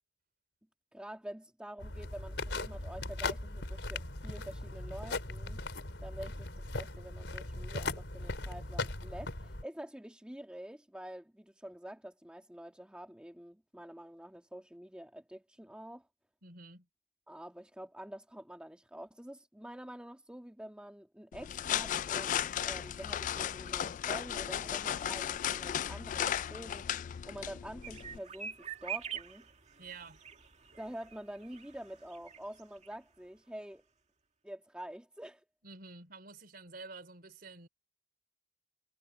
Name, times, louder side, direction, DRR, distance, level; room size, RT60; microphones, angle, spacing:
voice 1, 0.9-5.6 6.0-16.1 17.3-26.9 27.2-29.5 30.8-33.8 34.4-35.4, right 1 dB, 5° right, 1.6 m, -47 dB
sound 1, 1.8-9.6, left 2 dB, 90° left, 3.5 m, -39 dB
voice 2, 16.4-16.9 29.8-30.2 35.6-37.7, right 3 dB, 55° right, 4.1 m, -49 dB
sound 2, 21.3-28.2, left 10 dB, 45° left, 0.3 m, -35 dB
sound 3, 27.8-33.0 33.2-33.3 33.6-33.7, right 8 dB, 40° right, 2.1 m, -45 dB
head